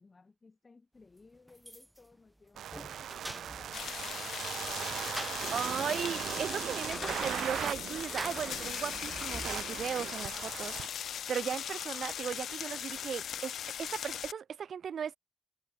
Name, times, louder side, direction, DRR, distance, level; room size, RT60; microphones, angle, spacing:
voice 1, 0.0-6.1, left 3 dB, 25° left, 6.9 m, -60 dB
sound 1, 1.5-2.1 2.5-3.8 4.7-5.5 6.3-10.0, right 1 dB, 5° right, 0.6 m, -45 dB
sound 2, 2.6-10.9, right 10 dB, 85° right, 0.8 m, -39 dB
sound 3, 3.7-14.3, left 9 dB, 75° left, 1.2 m, -39 dB
voice 2, 5.5-10.8 11.3-13.5 13.8-15.2, right 7 dB, 55° right, 0.3 m, -37 dB
wide cardioid pair, 155°, 0 cm